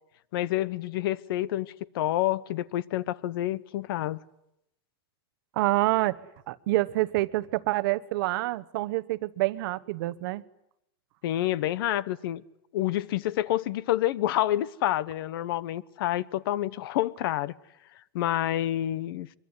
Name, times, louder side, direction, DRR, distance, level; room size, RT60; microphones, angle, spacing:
voice 1, 0.3-4.2 11.2-12.4 12.7-17.5 18.1-19.3, left 13 dB, 60° left, 1.0 m, -28 dB
voice 2, 5.6-6.2 6.5-10.4, right 19 dB, 55° right, 1.0 m, -27 dB
24.0 x 23.5 x 9.7 m
supercardioid pair, 155°, 13 cm